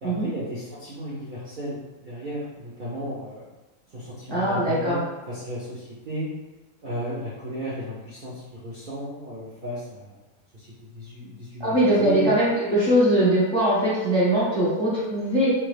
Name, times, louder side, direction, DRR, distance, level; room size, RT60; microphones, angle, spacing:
voice 1, 0.0-3.5 3.9-6.3 6.8-10.1 10.5-10.7 10.9-12.3, equal, 70° right, -8 dB, 0.4 m, -34 dB
voice 2, 4.3-5.0 11.6-15.5, right 1 dB, 30° left, -9 dB, 0.5 m, -21 dB
2.6 x 2.3 x 3.2 m, 1.1 s
omnidirectional pair, 1.7 m